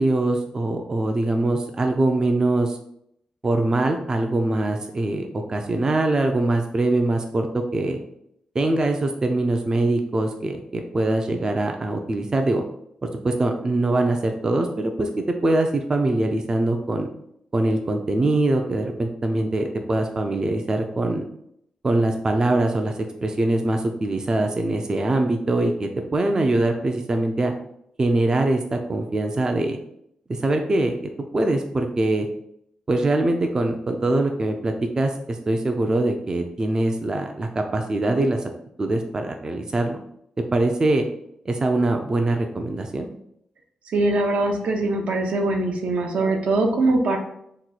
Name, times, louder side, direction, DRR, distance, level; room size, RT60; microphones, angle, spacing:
voice 1, 0.0-2.8 3.4-8.0 8.5-12.6 13.0-15.1 15.4-17.1 17.5-21.2 21.8-22.9 23.2-27.5 28.0-29.8 30.3-30.9 31.3-32.3 32.9-38.4 38.8-40.0 40.5-41.0 41.5-43.1, right 2 dB, 30° right, 4 dB, 0.3 m, -23 dB
voice 2, 43.9-47.2, right 2 dB, 75° right, 3 dB, 0.6 m, -22 dB
2.9 x 2.2 x 4.0 m, 0.74 s
cardioid pair, 90°, 2 cm